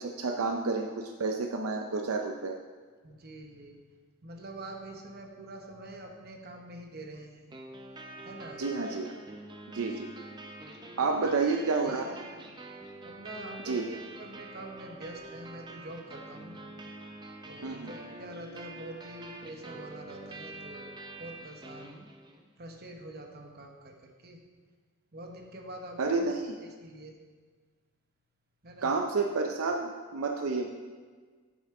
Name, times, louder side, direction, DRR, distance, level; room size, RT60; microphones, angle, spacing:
voice 1, 0.0-2.6 8.6-9.1 9.7-10.1 11.0-12.0 13.6-13.8 17.6-17.9 26.0-26.5 28.8-30.7, right 4 dB, 75° right, 3 dB, 0.6 m, -30 dB
voice 2, 3.0-3.8 4.2-7.4 8.2-8.6 9.9-10.0 11.0-12.2 13.0-16.6 17.4-22.0 22.6-24.4 25.1-26.3 26.6-27.2 28.6-29.0, right 1 dB, 45° right, 2 dB, 1.1 m, -45 dB
sound 1, 7.5-22.5, right 2 dB, 20° right, 0.6 m, -46 dB
10.0 x 7.1 x 3.7 m, 1.5 s
head